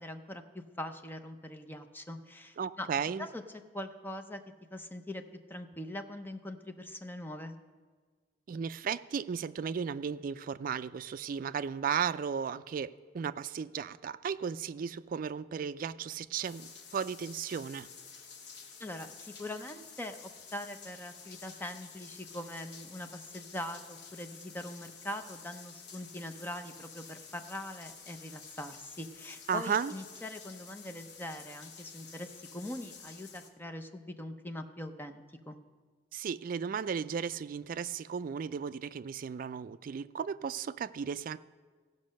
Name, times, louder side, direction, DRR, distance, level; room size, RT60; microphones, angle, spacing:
voice 1, 0.0-2.9 3.2-3.4 3.7-4.4 4.7-5.2 5.5-7.6 18.8-35.6, left 1 dB, 10° left, 7 dB, 0.6 m, -42 dB
voice 2, 2.6-3.3 8.5-17.9 29.5-29.9 36.1-41.4, right 6 dB, 50° right, 14 dB, 0.3 m, -35 dB
sound 1, 16.4-33.5, left 5 dB, 65° left, 1.1 m, -51 dB
16.0 x 5.3 x 6.4 m, 1.5 s
head